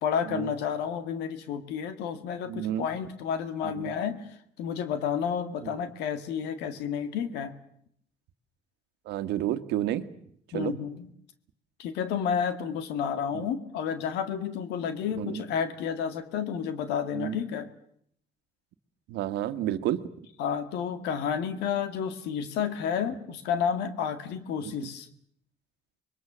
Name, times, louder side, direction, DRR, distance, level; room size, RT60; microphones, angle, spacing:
voice 1, 0.0-4.3 4.6-7.5 10.5-11.1 11.8-17.7 20.4-25.1, left 7 dB, 90° left, 10 dB, 1.9 m, -31 dB
voice 2, 2.4-2.9 3.6-3.9 5.6-5.9 9.0-10.1 10.5-10.7 13.3-13.5 15.1-15.4 17.1-17.4 19.1-20.1 24.6-24.7, right 12 dB, 85° right, 11 dB, 1.4 m, -31 dB
26.5 x 22.0 x 7.4 m, 0.68 s
cardioid pair, 110°, 17 cm